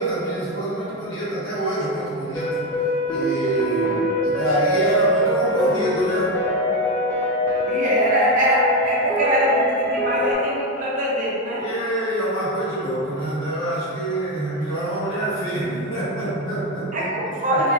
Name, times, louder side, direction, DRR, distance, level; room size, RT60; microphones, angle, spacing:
voice 1, 0.0-2.6 3.1-6.3 11.6-17.1 17.5-17.6, right 1 dB, 70° left, -10 dB, 1.1 m, -25 dB
sound 1, 2.3-10.3, left 1 dB, 15° left, 0.3 m, -23 dB
voice 2, 7.7-11.7 16.9-17.7, right 1 dB, 40° right, -6 dB, 0.5 m, -22 dB
3.1 x 2.8 x 2.4 m, 2.6 s
head